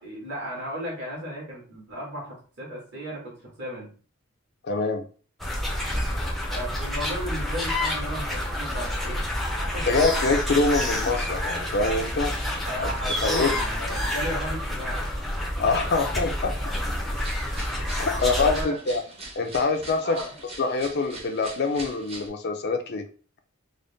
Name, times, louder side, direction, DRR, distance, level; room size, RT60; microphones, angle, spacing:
voice 1, 0.0-3.9 6.5-9.4 9.7-9.9 12.6-15.1 18.1-18.8 20.0-20.3, equal, 55° right, -3 dB, 1.8 m, -35 dB
voice 2, 4.6-5.1 9.9-12.4 12.8-12.9 13.2-13.5 15.6-16.5 18.0-19.0 19.4-20.2 20.6-23.1, left 3 dB, 50° left, 5 dB, 0.5 m, -25 dB
sound 1, 5.4-18.6, left 1 dB, ahead, 0.6 m, -28 dB
sound 2, 17.1-22.3, right 2 dB, 30° right, 0.9 m, -42 dB
3.9 x 2.0 x 3.5 m, 0.40 s
head